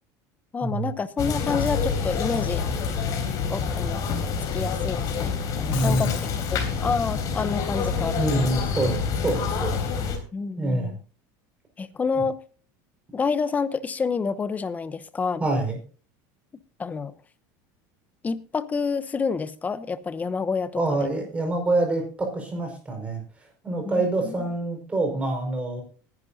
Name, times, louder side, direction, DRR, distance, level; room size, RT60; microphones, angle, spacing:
voice 1, 0.5-2.6 3.5-4.0 4.5-6.2 6.5-8.6 10.3-11.0 11.8-12.4 13.1-15.4 16.8-17.2 18.2-21.0 23.8-24.3, left 5 dB, 15° left, 0.8 m, -28 dB
sound 1, 1.2-10.2, left 5 dB, 40° left, 3.6 m, -27 dB
Shatter, 5.7-6.6, left 14 dB, 60° left, 1.7 m, -38 dB
voice 2, 5.7-6.2 8.1-10.2 10.6-11.0 15.4-15.8 20.8-23.2 23.6-25.8, right 2 dB, 15° right, 5.1 m, -26 dB
21.0 x 11.0 x 2.7 m
supercardioid pair, 145°, 9 cm